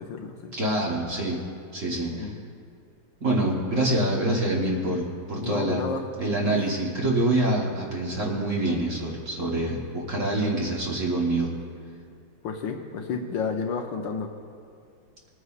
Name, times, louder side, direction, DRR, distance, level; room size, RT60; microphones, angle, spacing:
voice 1, 0.0-0.5 2.1-2.4 3.7-3.8 5.4-6.0 6.4-6.6 12.4-14.3, left 5 dB, 70° left, 3 dB, 1.3 m, -31 dB
voice 2, 0.5-1.4 1.7-2.3 3.2-5.8 6.2-11.5, right 1 dB, 40° right, -3 dB, 1.5 m, -26 dB
20.5 x 9.4 x 2.4 m, 2.3 s
omnidirectional pair, 2.3 m